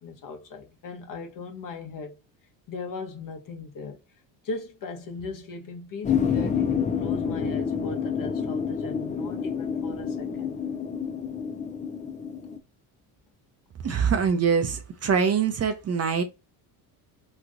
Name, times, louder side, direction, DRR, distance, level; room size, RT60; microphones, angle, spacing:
voice 1, 0.0-2.1 2.7-4.0 4.4-10.6, left 3 dB, 45° left, 1.1 m, -38 dB
sound 1, 6.0-12.6, left 7 dB, 15° left, 0.4 m, -28 dB
voice 2, 13.8-16.2, right 6 dB, 35° right, 0.7 m, -24 dB
3.1 x 2.5 x 3.6 m
supercardioid pair, 95°, 44 cm